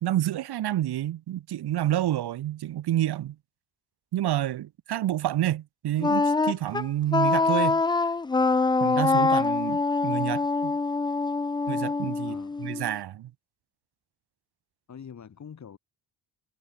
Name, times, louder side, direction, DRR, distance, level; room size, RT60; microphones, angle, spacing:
voice 1, 0.0-3.4 4.1-7.8 8.8-10.7 11.7-13.3, right 13 dB, 70° right, 1.7 m, -29 dB
Wind instrument woodwind instrument, 6.0-12.9, left 3 dB, 10° left, 0.4 m, -24 dB
voice 2, 12.3-12.6 14.9-15.8, left 7 dB, 45° left, 7.7 m, -44 dB
cardioid pair, 150°, 40 cm